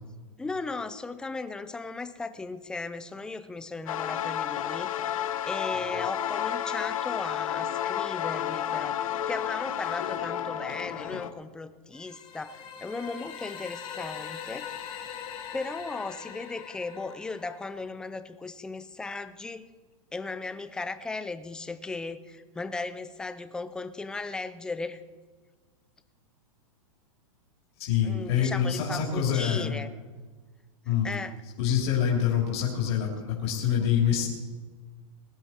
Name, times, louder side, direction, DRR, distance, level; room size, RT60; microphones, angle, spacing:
voice 1, 0.4-15.2 15.5-19.7 20.1-25.0 28.0-29.9 30.9-31.4, left 3 dB, 5° left, 12 dB, 0.4 m, -37 dB
sound 1, 3.9-11.3, left 10 dB, 70° left, 1.1 m, -31 dB
sound 2, 11.9-17.9, left 8 dB, 30° left, 2.1 m, -42 dB
voice 2, 27.8-29.7 30.8-31.1 31.6-34.3, left 8 dB, 50° left, -2 dB, 3.2 m, -26 dB
20.0 x 11.0 x 4.4 m, 1.4 s
supercardioid pair, 160°, 18 cm